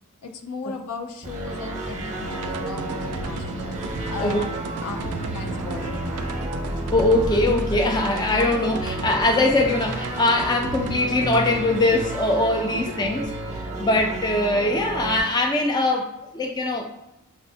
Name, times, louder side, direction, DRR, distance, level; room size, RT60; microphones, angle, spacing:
voice 1, 0.2-3.5 4.1-6.0 12.7-13.2, left 3 dB, 75° left, 6 dB, 0.5 m, -36 dB
sound 1, 1.2-15.2, right 1 dB, 30° right, 0.6 m, -31 dB
Bowed string instrument, 2.0-7.0, left 1 dB, 60° left, 0.8 m, -41 dB
sound 2, 2.3-11.5, right 4 dB, 75° right, 0.3 m, -35 dB
voice 2, 6.9-13.3 13.8-16.9, left 2 dB, 20° left, 3 dB, 0.3 m, -22 dB
5.9 x 2.0 x 2.7 m, 0.91 s
head